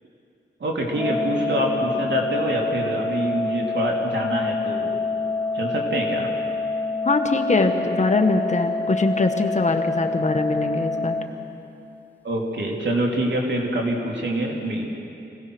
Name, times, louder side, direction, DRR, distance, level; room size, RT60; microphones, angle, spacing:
voice 1, 0.6-4.9 5.5-6.3 12.2-14.8, right 1 dB, 70° right, -1 dB, 3.0 m, -25 dB
Organ, 0.9-11.9, left 3 dB, 10° left, 1.3 m, -27 dB
voice 2, 7.0-11.2, left 3 dB, 40° left, 4 dB, 1.7 m, -22 dB
25.5 x 17.5 x 6.3 m, 2.7 s
wide cardioid pair, 85°, 19 cm